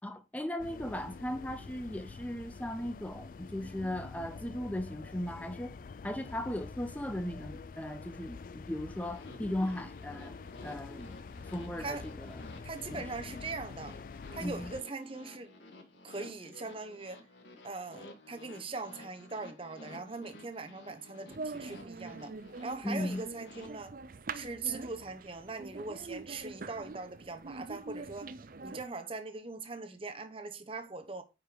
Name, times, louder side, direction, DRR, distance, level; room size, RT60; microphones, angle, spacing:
voice 1, 0.0-5.8 6.0-10.4 10.6-11.2 11.4-12.4 12.9-13.0 14.4-14.7 22.8-23.2, left 1 dB, 10° left, 0.6 m, -37 dB
sound 1, 0.6-14.8, left 4 dB, 50° left, 0.3 m, -46 dB
sound 2, 8.9-23.7, left 2 dB, 75° left, 1.8 m, -53 dB
voice 2, 12.6-14.0 14.3-15.5 16.0-17.2 17.6-22.3 22.6-24.0 24.3-28.3 28.6-31.2, right 3 dB, 30° right, 0.9 m, -41 dB
sound 3, 21.3-28.8, right 3 dB, 50° right, 0.5 m, -44 dB
9.5 x 5.1 x 3.8 m
head